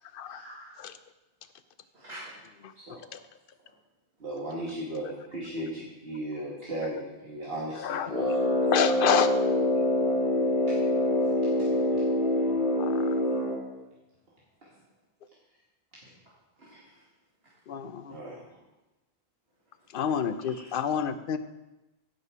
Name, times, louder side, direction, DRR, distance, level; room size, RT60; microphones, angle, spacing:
voice 1, 0.2-0.8 1.9-2.3 16.6-17.1 17.4-17.5 19.8-19.9 20.4-20.7, right 1 dB, 85° right, -8 dB, 2.5 m, -47 dB
voice 2, 4.2-8.4 9.8-9.9 11.4-11.7 14.6-14.7 18.1-18.4, right 1 dB, 70° right, -6 dB, 1.9 m, -36 dB
Brass instrument, 8.0-13.7, left 1 dB, 35° left, 3.0 m, -25 dB
voice 3, 8.7-9.3 12.8-12.9 17.7-18.2 19.9-21.4, left 8 dB, 60° left, 11 dB, 0.8 m, -27 dB
15.5 x 5.6 x 4.7 m, 1.0 s
omnidirectional pair, 1.0 m